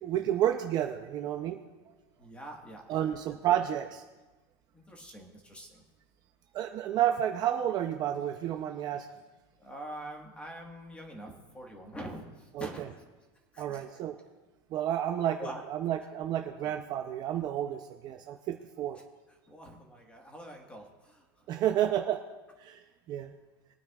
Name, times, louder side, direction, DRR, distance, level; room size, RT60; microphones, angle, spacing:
voice 1, 0.0-1.6 2.9-4.0 6.5-9.1 12.6-12.7 13.6-14.2 14.7-15.4 15.7-19.0 21.5-22.2 22.6-22.8 23.1-23.3, right 11 dB, 30° right, 5 dB, 0.5 m, -30 dB
voice 2, 2.2-3.2 4.9-5.7 9.6-12.2 12.6-12.9 13.7-13.8 15.4-15.6 16.0-16.1 16.6-16.8 19.5-20.8, right 1 dB, 10° left, 1 dB, 1.4 m, -44 dB
21.5 x 9.3 x 2.4 m, 1.2 s
supercardioid pair, 170°, 13 cm